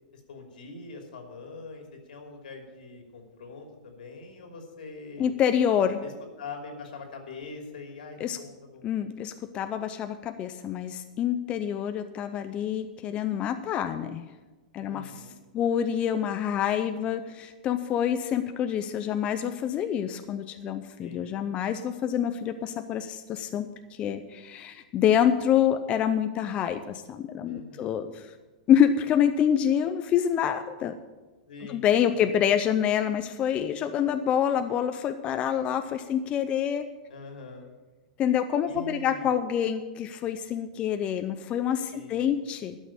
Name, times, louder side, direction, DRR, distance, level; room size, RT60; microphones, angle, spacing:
voice 1, 0.1-5.3 6.0-6.1 6.4-8.9 14.8-15.4 21.0-21.3 27.4-28.0 31.5-32.3 37.1-37.7 38.6-39.3 41.9-42.3, left 3 dB, 85° left, 3 dB, 2.9 m, -43 dB
voice 2, 5.2-6.0 8.2-8.4 8.8-14.3 14.7-15.1 15.5-23.7 24.0-28.2 28.7-30.9 31.7-36.9 38.2-42.8, left 9 dB, 25° left, 9 dB, 0.6 m, -26 dB
12.0 x 6.3 x 8.8 m, 1.2 s
supercardioid pair, 150°, 5 cm